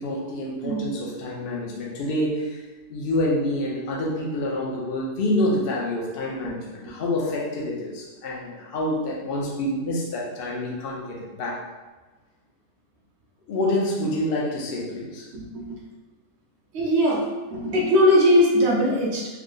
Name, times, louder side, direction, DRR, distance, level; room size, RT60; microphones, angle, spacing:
voice 1, 0.0-2.6 2.9-11.6 13.5-15.3, left 1 dB, 50° left, -3 dB, 0.7 m, -27 dB
voice 2, 15.3-15.8 16.7-17.2 17.5-19.3, equal, 60° right, -4 dB, 0.7 m, -20 dB
3.5 x 2.1 x 3.7 m, 1.2 s
omnidirectional pair, 1.6 m